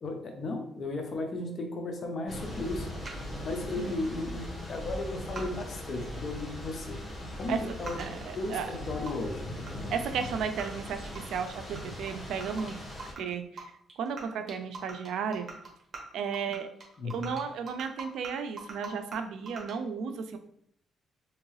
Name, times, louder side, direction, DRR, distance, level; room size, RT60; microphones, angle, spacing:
voice 1, 0.0-2.9 3.4-7.0 7.4-9.5 17.0-17.3, left 2 dB, 50° left, 4 dB, 0.7 m, -35 dB
Thunder / Rain, 2.3-13.1, left 1 dB, 20° left, 1.3 m, -40 dB
sound 1, 3.0-3.1 4.9-5.0 5.3-5.6 6.3-6.4 6.7-6.9 7.1-7.2 7.9-8.0 8.5-9.1 9.6-9.7 10.0-10.3 10.6-10.7 11.2-11.3 11.5-11.8 12.1-12.2 12.4-12.7 13.0-13.2 13.6-13.7 13.9-14.2 14.5-16.0 16.3-19.2 19.4-19.7, right 4 dB, 40° right, 1.3 m, -43 dB
voice 2, 7.5-8.7 9.9-12.8 13.2-13.7 14.0-15.5 16.1-16.7 17.1-20.4, right 6 dB, 80° right, 8 dB, 0.4 m, -34 dB
3.6 x 3.0 x 3.1 m, 0.69 s
cardioid pair, 90°, 0 cm